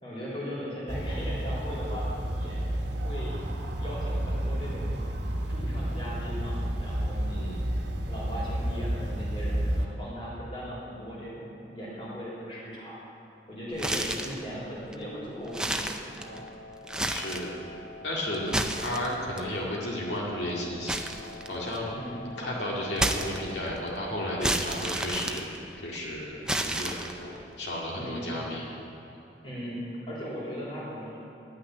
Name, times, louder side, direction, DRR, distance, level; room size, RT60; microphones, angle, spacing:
voice 1, 0.0-2.7 3.0-3.3 3.8-7.8 8.1-13.0 13.5-16.4 21.9-22.2 27.9-28.4 29.4-31.2, equal, 30° left, -7 dB, 3.1 m, -38 dB
sound 1, 0.9-9.9, right 1 dB, 80° right, 1.1 m, -31 dB
voice 2, 7.3-7.7 14.0-14.1 17.1-17.6 18.0-21.1 21.5-22.0 22.4-28.7, left 1 dB, 85° left, -4 dB, 2.1 m, -33 dB
sound 2, 13.7-14.4 14.9-15.0 15.5-16.5 16.8-17.5 18.3-19.4 20.9-21.9 23.0-23.8 24.4-26.0 26.5-27.4, right 1 dB, 5° right, 0.4 m, -30 dB
Wind instrument woodwind instrument, 16.2-24.5, left 3 dB, 55° left, 1.3 m, -46 dB
11.0 x 6.2 x 9.1 m, 2.9 s
head